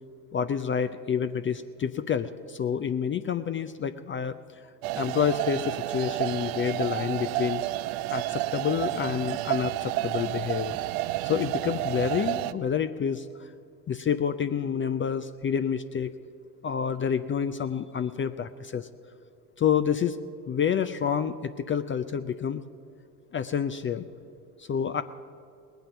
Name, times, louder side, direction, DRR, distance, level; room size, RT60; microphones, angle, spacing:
voice 1, 0.3-4.6 4.9-7.6 8.1-10.8 11.2-13.5 13.9-16.1 16.6-18.9 19.6-20.2 20.5-22.6 23.3-24.1 24.6-25.0, left 8 dB, 25° left, 11 dB, 0.5 m, -28 dB
sound 1, 4.8-12.5, right 16 dB, 65° right, 0.7 m, -30 dB
19.0 x 9.2 x 7.0 m, 2.5 s
hypercardioid pair, 70°, 47 cm